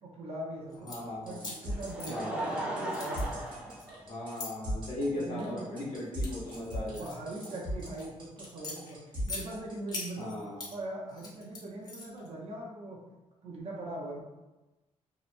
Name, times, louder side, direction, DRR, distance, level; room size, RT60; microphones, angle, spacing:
voice 1, 0.0-0.9 1.2-3.6 5.1-5.8 6.8-9.0 9.3-10.3 10.7-13.0 13.4-14.2, right 2 dB, 60° right, -3 dB, 0.6 m, -41 dB
sound 1, 0.7-1.0 1.4-2.6 2.9-4.5 5.2-5.5 6.0-8.0 8.4-9.4 9.9-10.7 11.1-12.3, left 3 dB, 35° left, 0.7 m, -42 dB
voice 2, 0.8-1.4 2.1-2.6 4.1-7.1 10.2-10.6, left 1 dB, 75° left, -5 dB, 0.9 m, -37 dB
sound 2, 0.9-10.1, equal, 45° right, 1.0 m, -38 dB
Laughter, 1.4-4.6 5.5-5.6 7.0-7.1, right 1 dB, 10° right, 0.4 m, -37 dB
2.8 x 2.0 x 2.5 m, 1.1 s
cardioid pair, 120°, 12 cm